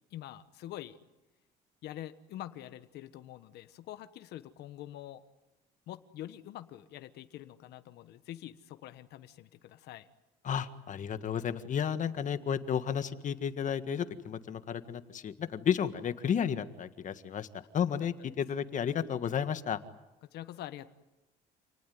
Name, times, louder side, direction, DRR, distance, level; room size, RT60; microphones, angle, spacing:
voice 1, 0.1-1.0 1.8-5.2 5.9-10.1 20.3-20.9, left 13 dB, 75° left, 10 dB, 1.3 m, -45 dB
voice 2, 10.4-19.8, left 8 dB, 50° left, 10 dB, 1.7 m, -32 dB
28.5 x 19.0 x 9.5 m, 1.0 s
cardioid pair, 110°, 17 cm